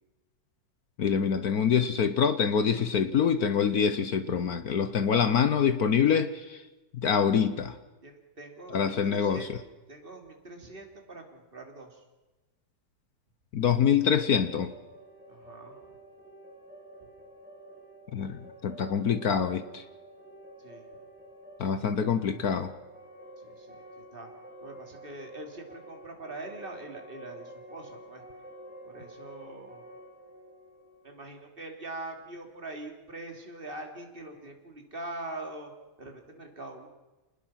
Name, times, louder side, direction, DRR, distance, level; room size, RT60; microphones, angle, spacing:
voice 1, 1.0-6.6 6.9-7.8 8.7-9.5 13.5-14.7 18.1-19.8 21.6-22.7, left 7 dB, 55° left, 11 dB, 1.2 m, -25 dB
voice 2, 8.0-9.5 9.9-12.0 15.3-15.8 20.6-20.8 23.4-24.3 24.6-28.2 28.8-29.8 31.0-35.7 36.0-36.9, right 2 dB, 25° right, 3 dB, 3.1 m, -43 dB
sound 1, 14.2-32.0, right 1 dB, 5° right, 4.3 m, -49 dB
27.5 x 20.0 x 5.9 m, 1.1 s
omnidirectional pair, 2.3 m